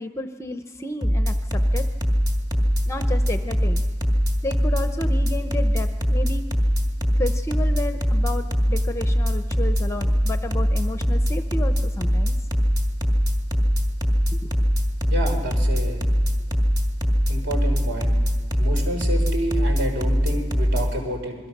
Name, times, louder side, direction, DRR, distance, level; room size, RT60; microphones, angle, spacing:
voice 1, 0.0-1.9 2.9-3.8 4.4-6.4 7.2-12.3 14.3-14.5, left 1 dB, 15° left, 8 dB, 0.7 m, -32 dB
sound 1, 1.0-20.8, equal, 20° right, 2.1 m, -21 dB
voice 2, 15.1-16.0 17.3-18.1 18.6-21.3, right 1 dB, 55° right, 3 dB, 3.9 m, -29 dB
28.0 x 22.0 x 6.0 m, 1.5 s
head